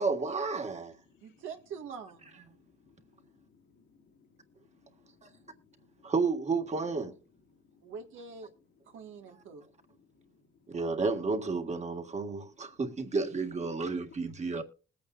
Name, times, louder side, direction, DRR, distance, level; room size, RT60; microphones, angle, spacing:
voice 1, 0.0-0.9 5.2-5.3 6.0-7.2 10.7-14.6, right 4 dB, 35° right, 1.8 m, -31 dB
voice 2, 0.6-1.5 2.5-3.5 3.9-4.5 5.0-6.1 7.5-7.9 8.8-11.0 12.0-12.8 14.1-14.6, left 4 dB, 75° left, 2.3 m, -64 dB
voice 3, 1.2-2.3 7.8-8.5 8.8-9.7, right 6 dB, 85° right, 1.8 m, -44 dB
20.5 x 8.6 x 2.5 m
cardioid pair, 90°, 20 cm